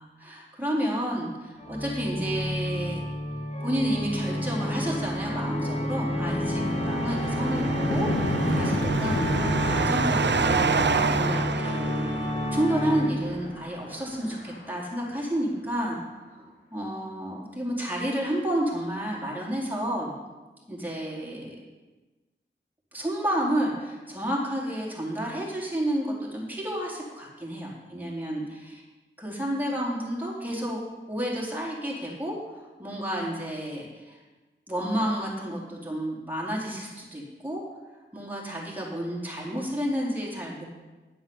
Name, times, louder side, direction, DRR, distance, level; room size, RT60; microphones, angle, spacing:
voice 1, 0.0-3.0 3.6-7.6 7.9-20.1 20.7-21.6 22.9-28.8 29.2-30.8 31.1-34.2 34.7-37.6 38.1-40.6, right 1 dB, 10° right, -4 dB, 4.3 m, -31 dB
Organ, 1.6-13.4, left 1 dB, 35° left, 2.1 m, -29 dB
sound 1, 4.5-4.7 5.1-15.9, left 1 dB, 90° left, 2.1 m, -34 dB
sound 2, 6.3-12.6, right 6 dB, 65° right, 0.6 m, -28 dB
10.5 x 7.8 x 7.3 m, 1.2 s
cardioid pair, 50°, 20 cm